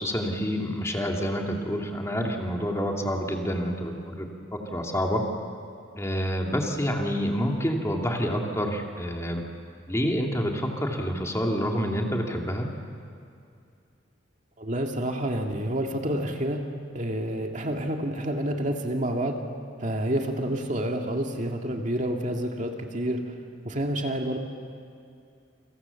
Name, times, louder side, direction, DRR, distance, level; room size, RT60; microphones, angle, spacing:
voice 1, 0.0-5.2 5.9-9.4 9.9-12.7, equal, 15° left, 1 dB, 2.6 m, -28 dB
voice 2, 14.6-16.6 16.9-19.4 19.8-23.3 23.6-24.4, right 1 dB, 40° right, 2 dB, 2.1 m, -28 dB
29.5 x 25.5 x 7.1 m, 2.5 s
head